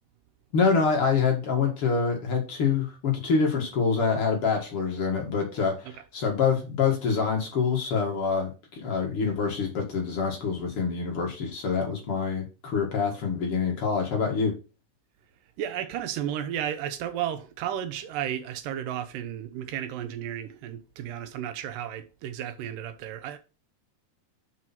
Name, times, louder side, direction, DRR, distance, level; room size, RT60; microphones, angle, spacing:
voice 1, 0.5-14.5, left 5 dB, 50° left, 2.1 m, -26 dB
voice 2, 15.6-23.4, right 10 dB, 85° right, 2.5 m, -33 dB
5.7 x 4.7 x 5.7 m
omnidirectional pair, 3.8 m